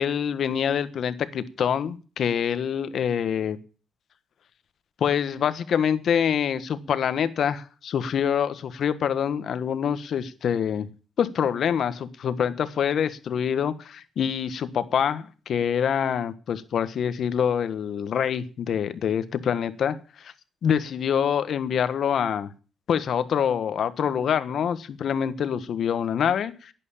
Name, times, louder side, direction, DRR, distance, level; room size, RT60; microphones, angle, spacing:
voice 1, 0.0-3.6 5.0-10.9 11.2-20.3 20.6-22.5 22.9-26.7, left 8 dB, 60° left, 13 dB, 1.3 m, -25 dB
11.5 x 9.1 x 8.7 m, 0.38 s
cardioid pair, 90°, 0 cm